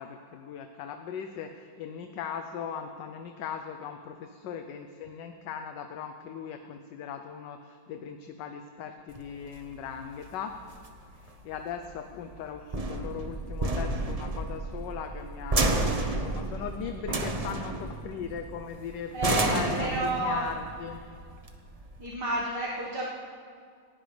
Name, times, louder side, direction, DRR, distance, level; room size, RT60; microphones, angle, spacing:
voice 1, 0.0-10.6 11.1-21.0, left 7 dB, 70° left, 6 dB, 1.3 m, -39 dB
sound 1, 9.1-22.1, right 2 dB, 40° right, 0.5 m, -31 dB
voice 2, 19.1-20.4 22.0-23.1, right 1 dB, 55° right, -5 dB, 2.1 m, -30 dB
18.5 x 16.5 x 3.3 m, 2.2 s
omnidirectional pair, 2.2 m